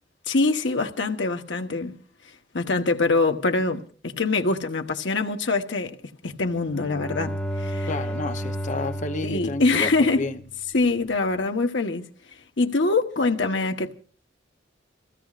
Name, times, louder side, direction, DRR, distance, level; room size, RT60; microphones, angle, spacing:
voice 1, 0.3-1.9 2.5-6.0 6.2-7.9 9.2-10.3 10.7-12.0 12.6-13.9, left 3 dB, 80° left, 1.1 m, -24 dB
Bowed string instrument, 6.6-10.6, equal, 5° left, 1.7 m, -32 dB
voice 2, 7.9-10.4, left 2 dB, 40° left, 0.7 m, -31 dB
27.5 x 16.0 x 2.5 m
head